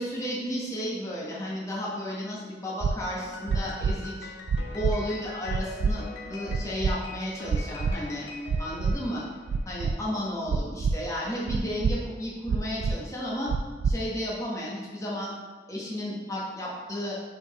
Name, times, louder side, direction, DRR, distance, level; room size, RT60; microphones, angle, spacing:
voice 1, 0.0-4.3 4.7-8.3 8.6-9.2 9.6-13.5 13.8-15.3 15.7-17.1, equal, 20° left, -5 dB, 1.1 m, -33 dB
sound 1, 2.8-2.9 3.5-3.9 4.5-4.9 5.5-5.9 6.5-6.9 7.5-7.9 8.5-8.9 9.5-9.9 10.5-10.9 11.5-11.9 12.5-12.9 13.5-13.9, right 5 dB, 70° right, 0.3 m, -25 dB
Piano, 3.2-9.7, left 3 dB, 70° left, 0.7 m, -43 dB
5.5 x 4.2 x 4.1 m, 1.4 s
head